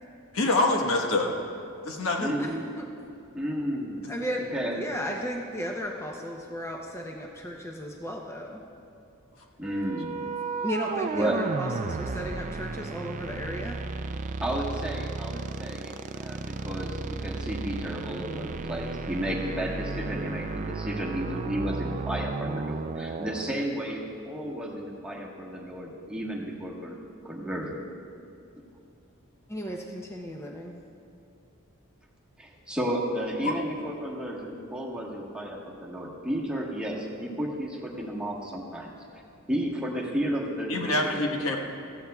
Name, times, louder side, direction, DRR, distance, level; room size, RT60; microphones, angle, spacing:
voice 1, 0.3-1.3 1.8-2.4 33.4-33.5 40.7-41.6, left 2 dB, 85° left, 1 dB, 1.3 m, -25 dB
voice 2, 2.2-2.6 3.3-4.1 4.4-4.8 9.6-10.2 11.1-11.6 14.4-27.0 27.2-27.8 32.4-38.9 39.5-41.2, right 1 dB, 5° right, -3 dB, 1.3 m, -32 dB
voice 3, 4.1-4.4 4.7-8.6 10.6-13.8 29.5-30.7, equal, 15° left, 1 dB, 0.6 m, -35 dB
sound 1, 9.6-23.5, right 3 dB, 35° right, 0.4 m, -34 dB
15.5 x 14.5 x 2.3 m, 2.6 s
head